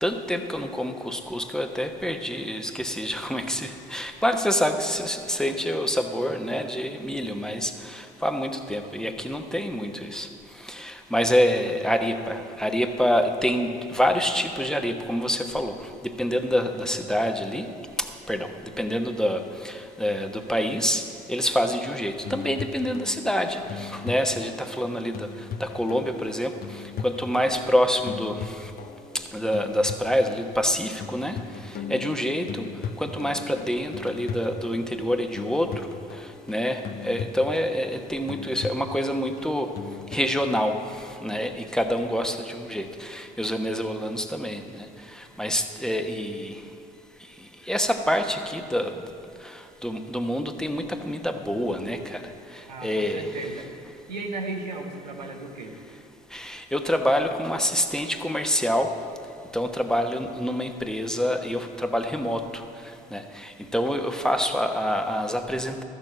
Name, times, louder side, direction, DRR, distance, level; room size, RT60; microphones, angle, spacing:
voice 1, 0.0-10.3 10.6-15.7 16.0-17.7 18.0-18.5 18.8-21.0 21.3-25.3 25.6-28.7 29.1-31.4 31.9-32.7 33.0-35.9 36.5-39.7 40.1-40.8 41.2-44.9 45.1-46.5 47.7-48.9 49.4-52.2 52.5-53.3 56.3-58.9 59.5-62.6 63.1-65.8, equal, 5° left, 5 dB, 1.1 m, -27 dB
sound 1, 22.2-40.4, left 5 dB, 45° left, 0.8 m, -38 dB
voice 2, 52.7-53.7 54.1-55.8, right 3 dB, 90° right, 2 dB, 1.1 m, -35 dB
13.5 x 7.0 x 7.4 m, 2.5 s
hypercardioid pair, 55°, 21 cm